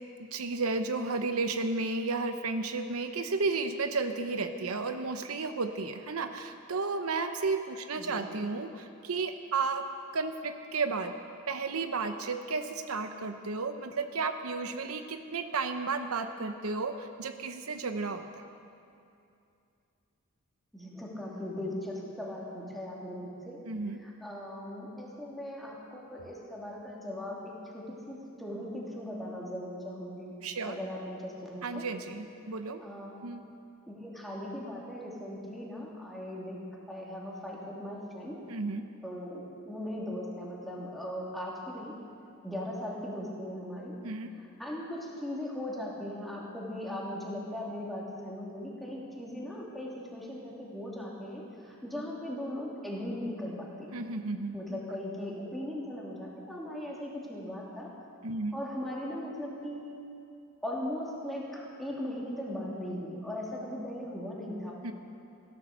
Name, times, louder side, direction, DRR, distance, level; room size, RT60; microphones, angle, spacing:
voice 1, 0.3-9.9 10.1-11.1 11.5-18.3 23.6-24.0 30.4-30.8 31.6-32.8 33.2-33.4 38.5-38.9 44.0-44.3 53.9-55.0 58.2-58.6 64.8-64.9, right 4 dB, 85° right, 8 dB, 0.8 m, -33 dB
voice 2, 20.7-23.6 24.0-30.4 30.7-31.8 32.8-33.3 33.9-36.6 36.9-38.3 39.0-41.9 42.4-43.9 44.6-53.9 54.5-57.9 58.5-60.0 60.6-64.8, left 1 dB, ahead, -5 dB, 2.8 m, -38 dB
16.5 x 12.0 x 6.6 m, 2.6 s
head